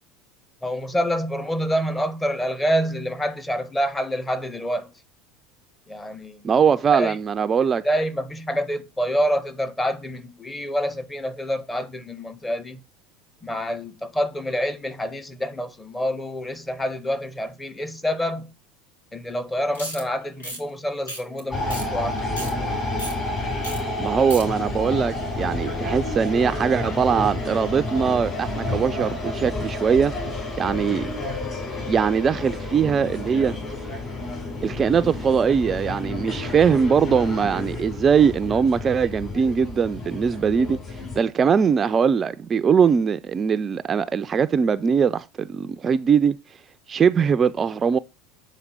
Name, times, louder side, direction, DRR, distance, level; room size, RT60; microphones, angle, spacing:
voice 1, 0.6-4.9 5.9-6.4 6.9-7.2 7.8-12.8 13.4-18.5 19.1-22.4 24.0-24.2, equal, 15° left, 1.0 m, -27 dB
voice 2, 6.4-7.8 24.0-31.1 31.9-33.5 34.6-40.8 41.2-46.4 46.9-48.0, right 6 dB, 30° right, 0.3 m, -21 dB
sound 1, 19.7-20.0 20.4-20.6 21.1-21.4 21.7-21.8 22.2-22.5 23.0-23.1 23.6-23.8 24.0-24.4, equal, 85° left, 2.3 m, -33 dB
sound 2, 21.5-41.2, left 2 dB, 30° left, 4.7 m, -30 dB
7.2 x 4.1 x 5.2 m
hypercardioid pair, 75°, 0 cm